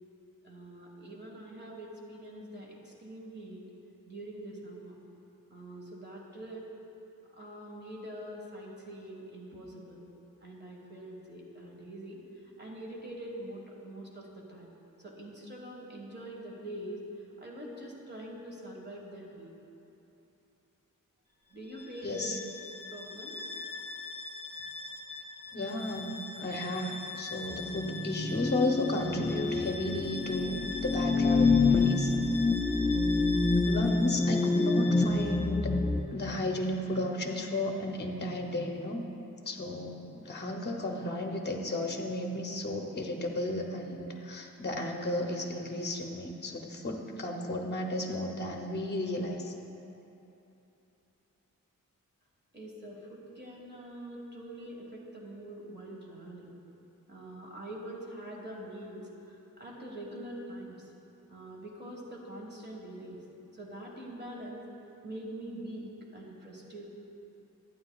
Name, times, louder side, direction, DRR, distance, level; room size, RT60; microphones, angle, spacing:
voice 1, 0.4-3.6 4.1-5.0 5.5-6.7 7.4-10.0 10.4-12.2 12.6-14.7 15.0-17.0 17.4-19.5 21.5-22.4 22.6-23.4 52.5-56.5 57.1-60.8 61.3-63.2 63.5-64.6 65.0-66.9, right 1 dB, 30° right, -2 dB, 1.5 m, -44 dB
Bowed string instrument, 21.7-35.5, left 3 dB, 15° right, 0.8 m, -43 dB
voice 2, 22.0-22.4 25.5-32.1 33.6-35.7 36.1-39.0 39.5-49.5, left 1 dB, 30° left, 2 dB, 0.7 m, -33 dB
sound 1, 27.5-36.0, left 3 dB, 10° left, 0.3 m, -27 dB
11.5 x 8.9 x 2.3 m, 3.0 s
wide cardioid pair, 95°, 33 cm